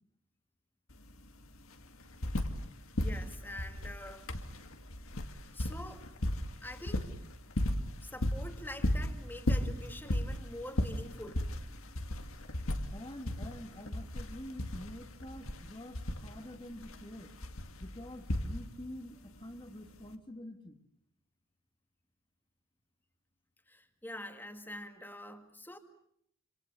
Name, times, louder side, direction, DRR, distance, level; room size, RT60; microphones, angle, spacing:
sound 1, 0.9-1.0 1.2-2.7 2.9-18.9 20.0-20.1, left 1 dB, 90° left, 2.3 m, -35 dB
voice 1, 3.0-4.3 5.5-6.1 6.6-7.1 8.0-11.5 23.7-25.8, left 1 dB, 10° left, 6 dB, 2.0 m, -45 dB
voice 2, 12.9-17.3 17.8-20.8, left 1 dB, 25° left, 4 dB, 1.8 m, -47 dB
27.5 x 27.0 x 6.8 m, 0.72 s
head